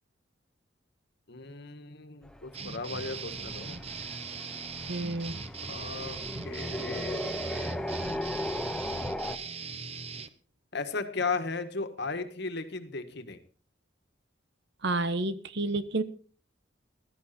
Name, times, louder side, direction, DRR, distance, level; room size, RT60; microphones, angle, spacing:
voice 1, 1.3-3.8 5.7-8.0 10.7-13.4, left 4 dB, 60° left, 1.7 m, -36 dB
sound 1, 2.2-9.4, left 1 dB, 5° left, 0.8 m, -37 dB
sound 2, 2.5-10.3, right 5 dB, 35° right, 1.0 m, -40 dB
voice 2, 4.9-5.4 8.9-9.1 14.8-16.0, right 2 dB, 65° right, 1.2 m, -30 dB
15.5 x 13.0 x 4.4 m
head